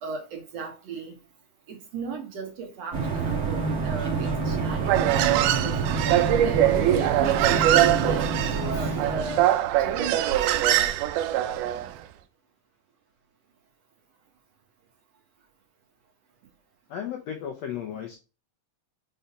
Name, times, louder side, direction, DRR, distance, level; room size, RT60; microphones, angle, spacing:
voice 1, 0.0-1.2 1.7-6.6 7.2-9.5 9.8-10.8, right 5 dB, 60° right, 2.1 m, -36 dB
sound 1, 2.9-9.5, right 4 dB, 40° right, 1.4 m, -27 dB
Human voice, 4.8-11.9, right 12 dB, 80° right, 2.0 m, -23 dB
voice 2, 16.9-18.2, left 9 dB, 75° left, 1.6 m, -34 dB
5.6 x 3.9 x 5.6 m
omnidirectional pair, 3.8 m